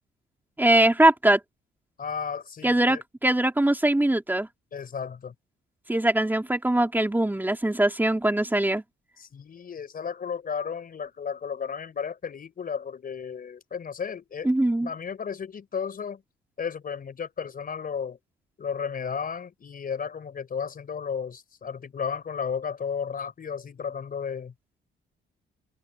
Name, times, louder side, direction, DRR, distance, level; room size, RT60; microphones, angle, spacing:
voice 1, 0.6-1.4 2.6-4.5 5.9-8.8 14.4-14.9, right 1 dB, 10° right, 3.3 m, -22 dB
voice 2, 2.0-3.0 4.7-5.3 9.2-14.5 14.8-16.2 16.6-18.2 18.6-24.5, left 6 dB, 45° left, 4.8 m, -33 dB
open air
cardioid pair, 90°, 20 cm